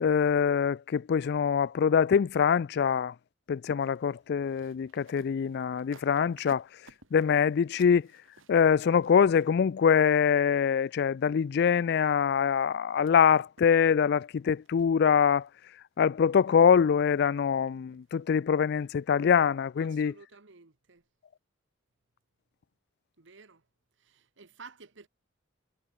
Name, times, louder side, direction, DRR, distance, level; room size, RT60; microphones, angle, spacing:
voice 1, 0.0-3.1 3.5-6.6 7.1-8.1 8.5-15.5 16.0-20.1, left 7 dB, 55° left, 0.3 m, -24 dB
sound 1, 3.8-9.8 11.4-11.5 11.8-13.1 13.6-14.1 14.4-14.8 15.4-15.7 16.0-16.6 17.0-17.5 17.9-18.3 18.8-19.0 19.3-19.4, right 3 dB, 80° right, 6.5 m, -59 dB
voice 2, 19.8-21.0 23.2-23.6 24.0-25.1, right 4 dB, 65° right, 1.3 m, -52 dB
head